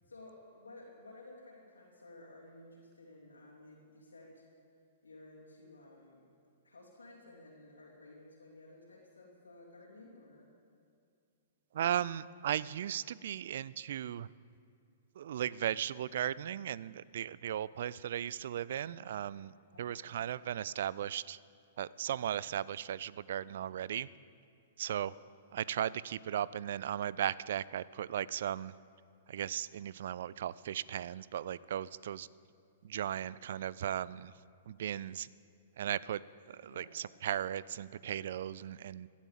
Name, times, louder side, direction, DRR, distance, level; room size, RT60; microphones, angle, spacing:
voice 1, 0.1-4.4 5.0-6.3 6.6-10.5 19.7-20.2 36.7-37.0, left 2 dB, 75° left, -4 dB, 3.1 m, -55 dB
voice 2, 11.7-14.3 15.2-19.5 19.8-21.4 21.8-24.1 24.8-25.1 25.5-28.7 29.3-32.3 32.8-34.3 34.7-35.3 35.8-36.2 36.5-39.1, right 10 dB, 55° right, 20 dB, 0.4 m, -36 dB
16.0 x 11.5 x 7.4 m, 2.4 s
figure-of-eight pair, 110°, 0 cm